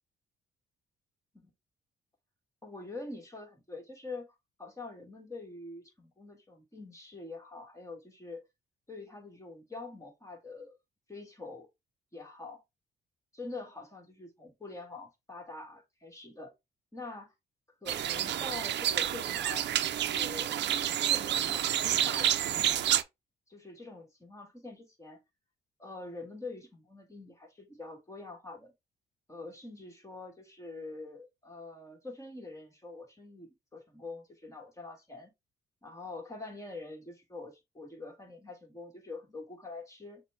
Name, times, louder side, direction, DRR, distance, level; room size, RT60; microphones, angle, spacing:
voice 1, 2.6-4.3 4.6-8.4 8.9-10.8 11.1-11.7 12.1-12.6 13.3-16.5 16.9-17.3 17.8-20.5 20.9-22.7 23.5-25.2 25.8-28.7 29.3-35.3 35.8-40.2, left 3 dB, 15° left, 1.6 m, -45 dB
sound 1, 17.9-23.0, right 11 dB, 60° right, 0.5 m, -29 dB
6.5 x 2.2 x 3.4 m
cardioid pair, 90°, 20 cm